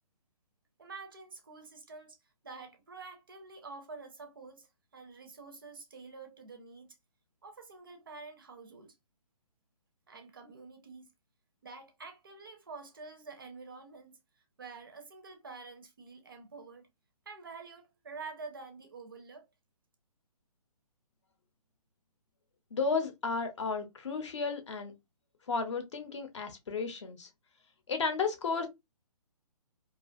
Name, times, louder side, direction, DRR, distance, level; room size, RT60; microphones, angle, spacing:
voice 1, 0.8-2.2 2.4-7.0 7.4-9.0 10.1-11.1 11.6-14.2 14.6-16.9 17.3-19.5, right 4 dB, 35° right, 0.4 m, -48 dB
voice 2, 22.7-24.9 25.5-27.3 27.9-28.7, left 4 dB, 50° left, 0.7 m, -33 dB
2.4 x 2.3 x 2.5 m
hypercardioid pair, 165°, 20 cm